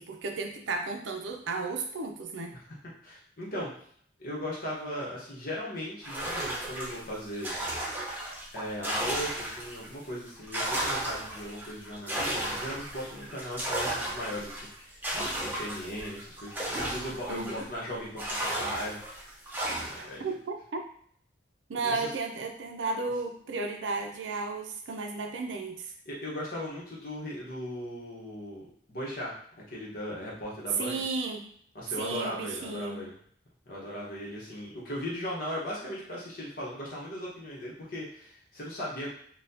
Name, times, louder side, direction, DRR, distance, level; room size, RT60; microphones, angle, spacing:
voice 1, 0.0-2.6 17.3-17.7 20.0-20.8 21.7-25.9 30.8-31.5 32.0-33.0, right 3 dB, 75° right, 4 dB, 0.5 m, -34 dB
voice 2, 3.0-3.7 4.2-7.5 8.5-19.0 19.7-20.2 21.8-22.1 26.0-28.6 28.9-29.3 29.7-31.1 31.7-33.1 33.7-39.1, equal, 50° left, -5 dB, 1.1 m, -38 dB
sound 1, 6.0-9.9 10.3-17.8 18.2-20.1, right 1 dB, 10° right, 0.6 m, -34 dB
4.1 x 2.3 x 2.7 m, 0.62 s
head